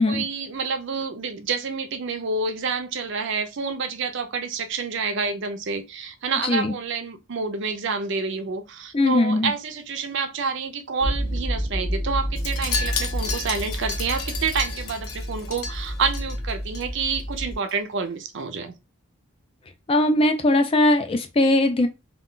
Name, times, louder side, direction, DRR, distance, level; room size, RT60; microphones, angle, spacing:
voice 1, 0.0-18.7, right 5 dB, 55° right, 0.5 m, -28 dB
voice 2, 6.4-6.7 8.9-9.5 19.9-21.9, left 2 dB, 25° left, 0.3 m, -20 dB
sound 1, 11.0-17.6, equal, 10° right, 0.6 m, -29 dB
Wind chime, 12.4-16.8 17.1-17.4 17.7-17.8, left 5 dB, 80° left, 0.6 m, -32 dB
2.4 x 2.2 x 3.7 m
head